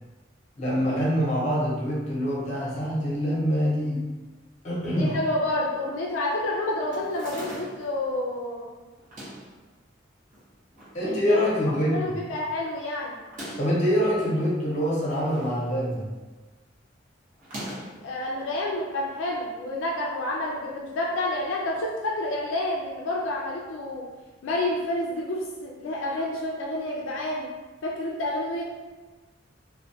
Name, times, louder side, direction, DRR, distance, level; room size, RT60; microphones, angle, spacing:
voice 1, 0.6-4.0 4.6-5.1 10.9-12.1 13.6-16.0, equal, 40° left, -5 dB, 0.7 m, -25 dB
voice 2, 4.9-8.7 11.0-13.2 18.0-24.0 24.4-27.5 27.8-28.6, left 1 dB, 75° left, -3 dB, 0.3 m, -29 dB
sound 1, 6.9-7.9 9.0-9.5 10.3-11.0 11.3-11.4 11.6-11.7 13.2-13.8 14.8-15.6 15.9-16.2 17.4-18.0, right 1 dB, 45° right, 0.8 m, -40 dB
2.2 x 2.1 x 2.6 m, 1.2 s
head